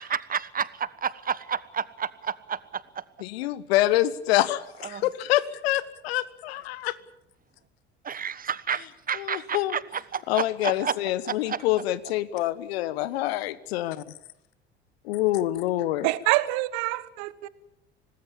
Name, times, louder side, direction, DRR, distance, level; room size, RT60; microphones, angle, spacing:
voice 1, 0.0-2.6 4.9-5.0 8.0-10.9 11.5-11.6, right 7 dB, 25° right, 1.3 m, -30 dB
voice 2, 3.2-6.9 9.1-9.8 10.3-14.0 15.0-16.1, left 15 dB, 65° left, 1.3 m, -26 dB
voice 3, 16.0-17.5, right 18 dB, 55° right, 1.4 m, -26 dB
26.0 x 19.5 x 7.3 m
figure-of-eight pair, 65°, 33 cm